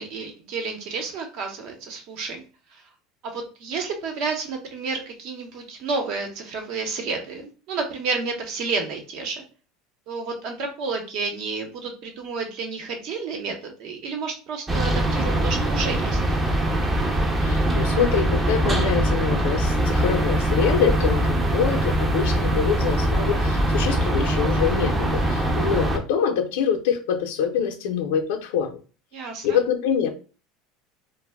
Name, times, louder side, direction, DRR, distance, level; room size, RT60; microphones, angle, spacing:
voice 1, 0.0-2.4 2.7-2.8 3.2-9.4 10.1-16.2 29.1-29.6, right 4 dB, 60° right, 3 dB, 0.8 m, -30 dB
sound 1, 14.7-26.0, right 1 dB, 20° right, 0.5 m, -22 dB
voice 2, 17.4-28.7 29.4-30.1, left 7 dB, 80° left, 5 dB, 0.5 m, -25 dB
2.1 x 2.0 x 3.4 m, 0.35 s
supercardioid pair, 120°, 0 cm